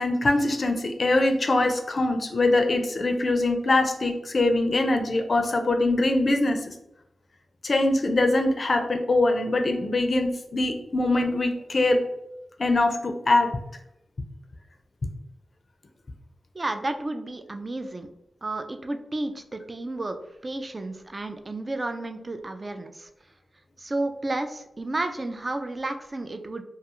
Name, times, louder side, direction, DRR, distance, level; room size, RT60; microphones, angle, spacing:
voice 1, 0.0-6.7 7.6-12.0 12.6-13.5, left 2 dB, 55° left, 5 dB, 0.4 m, -23 dB
voice 2, 16.5-18.1 18.4-20.2 20.4-23.1 23.8-26.6, right 2 dB, 35° right, 7 dB, 0.3 m, -32 dB
2.3 x 2.3 x 2.9 m, 0.86 s
cardioid pair, 55°, 0 cm